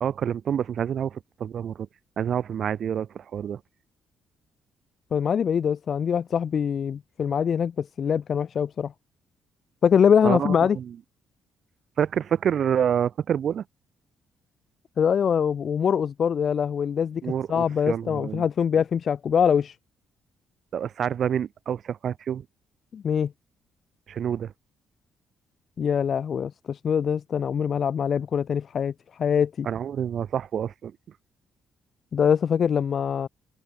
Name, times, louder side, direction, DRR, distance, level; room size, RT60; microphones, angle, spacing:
voice 1, 0.0-1.9 2.2-3.6 10.2-11.0 12.0-13.6 17.2-18.4 20.7-22.4 24.1-24.5 29.6-30.9, right 8 dB, 60° right, 0.8 m, -27 dB
voice 2, 5.1-8.9 9.8-10.8 15.0-19.8 22.9-23.3 25.8-28.9 29.2-29.7 32.1-33.3, left 7 dB, 55° left, 0.4 m, -23 dB
cardioid pair, 90°, 0 cm